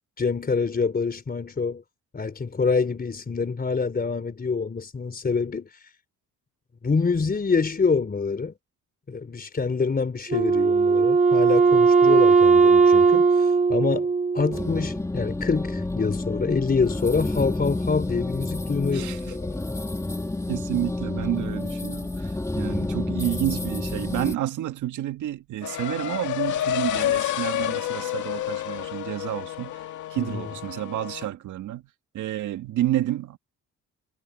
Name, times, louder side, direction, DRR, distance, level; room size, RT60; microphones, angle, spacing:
voice 1, 0.2-1.8 2.1-5.7 6.8-8.5 9.1-19.6 30.2-30.5, left 4 dB, 30° left, 3.9 m, -26 dB
Wind instrument woodwind instrument, 10.3-14.8, right 4 dB, 25° right, 2.4 m, -18 dB
sound 1, 14.5-24.4, left 2 dB, 10° left, 1.5 m, -29 dB
voice 2, 18.9-19.4 20.5-31.8 32.1-33.4, right 13 dB, 80° right, 1.8 m, -30 dB
sound 2, 25.6-31.3, left 12 dB, 75° left, 2.1 m, -29 dB
cardioid pair, 90°, 30 cm